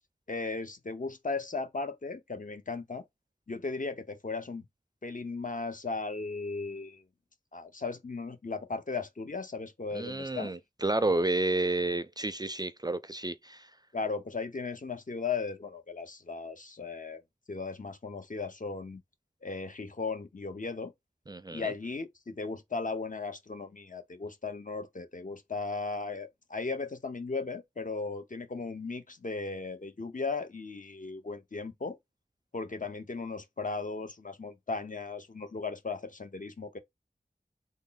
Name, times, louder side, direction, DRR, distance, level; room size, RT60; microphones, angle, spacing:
voice 1, 0.3-3.0 3.5-4.6 5.0-7.0 7.5-10.5 13.9-17.2 17.5-19.0 19.4-20.9 21.5-32.0 32.5-36.8, left 4 dB, 55° left, 0.8 m, -36 dB
voice 2, 9.9-13.7 21.3-21.7, right 2 dB, 25° right, 0.4 m, -30 dB
3.6 x 2.0 x 3.9 m
wide cardioid pair, 45°, 16 cm